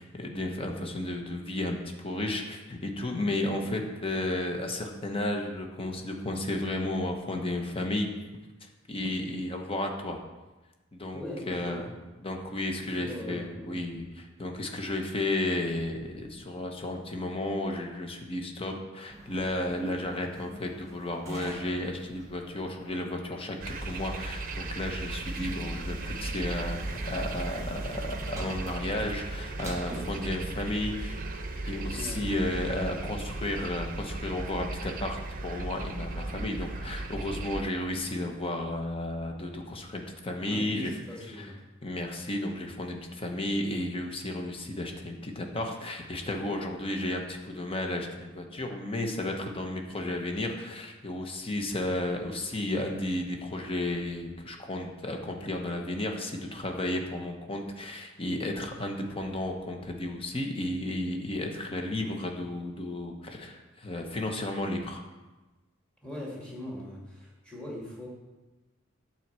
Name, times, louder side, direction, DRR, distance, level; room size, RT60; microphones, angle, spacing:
voice 1, 0.0-8.1 8.6-10.2 10.9-12.0 12.2-31.2 31.7-40.9 41.4-41.5 41.8-65.0, left 1 dB, 25° left, 3 dB, 1.0 m, -33 dB
voice 2, 11.1-11.9 12.8-13.8 31.9-32.3 40.4-41.6 66.0-68.1, left 1 dB, 5° left, -4 dB, 2.2 m, -40 dB
sound 1, 19.1-30.3, right 1 dB, 15° right, 1.6 m, -46 dB
sound 2, 23.6-37.6, right 2 dB, 45° right, 0.7 m, -36 dB
9.1 x 4.4 x 7.5 m, 1.2 s
head